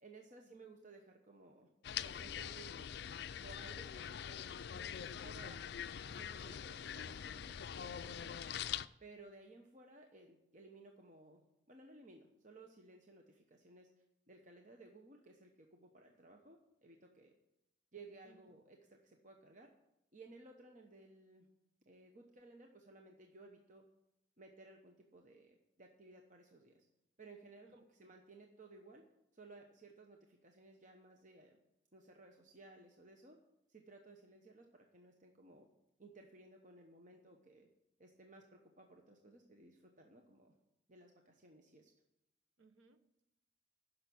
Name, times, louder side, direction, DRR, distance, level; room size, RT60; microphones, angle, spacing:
voice 1, 0.0-1.7 2.0-2.9 3.4-4.5 4.8-5.6 6.0-8.3 9.0-11.4 11.7-13.9 14.3-17.3 17.9-19.7 20.1-21.5 21.9-23.8 24.4-26.9 27.2-29.0 29.3-31.6 31.9-33.4 33.7-35.7 36.0-37.7 38.0-40.5 40.9-41.9, right 2 dB, 40° right, 2 dB, 1.0 m, -59 dB
sound 1, 1.8-8.9, left 9 dB, 55° left, 0.4 m, -44 dB
voice 2, 8.4-8.7 18.2-18.6 27.6-28.1 42.6-43.2, right 4 dB, 90° right, 9 dB, 1.2 m, -68 dB
10.5 x 6.7 x 8.4 m, 0.87 s
head